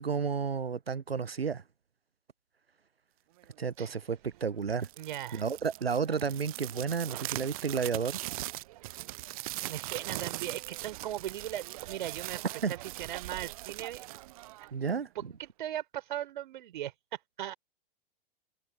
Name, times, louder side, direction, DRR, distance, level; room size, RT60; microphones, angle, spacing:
voice 1, 0.0-1.6 3.6-4.9 5.3-8.2 12.6-12.7 14.7-15.3, right 6 dB, 85° right, 0.6 m, -32 dB
sound 1, 4.7-15.0, right 18 dB, 40° right, 0.4 m, -41 dB
voice 2, 5.0-5.4 9.7-12.4 12.7-14.1 14.6-16.9 17.4-17.5, right 12 dB, 55° right, 3.9 m, -38 dB
figure-of-eight pair, 100°, 29 cm